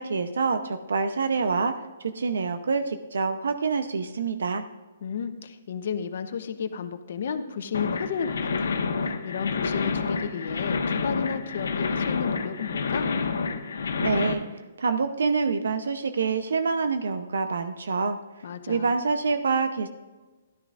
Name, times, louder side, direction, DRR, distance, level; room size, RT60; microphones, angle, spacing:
voice 1, 0.0-1.7 2.0-4.6 14.0-14.4 14.8-18.2 18.7-19.9, right 4 dB, 85° right, 8 dB, 0.8 m, -26 dB
voice 2, 5.0-13.1 18.4-18.9, left 6 dB, 60° left, 9 dB, 0.9 m, -33 dB
sound 1, 7.7-14.3, left 5 dB, 80° left, 1.2 m, -28 dB
13.5 x 12.0 x 2.5 m, 1.2 s
hypercardioid pair, 160°, 0 cm